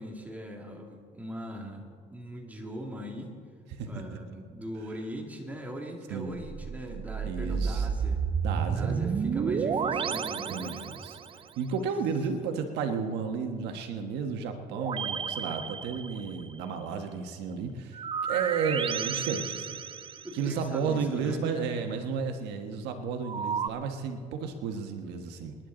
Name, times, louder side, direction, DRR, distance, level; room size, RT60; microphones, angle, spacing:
voice 1, 0.0-3.3 3.9-8.2 8.7-10.8 15.0-15.2 20.2-21.4, equal, 10° right, 0 dB, 2.3 m, -40 dB
sound 1, 6.4-11.4 14.7-16.5 17.9-20.5 23.2-23.7, right 6 dB, 30° right, 0.5 m, -31 dB
voice 2, 7.3-7.9 8.4-9.0 10.4-11.2 11.6-19.8 20.3-25.6, right 5 dB, 90° right, 5 dB, 1.4 m, -33 dB
28.0 x 10.5 x 3.9 m, 2.1 s
cardioid pair, 110°, 17 cm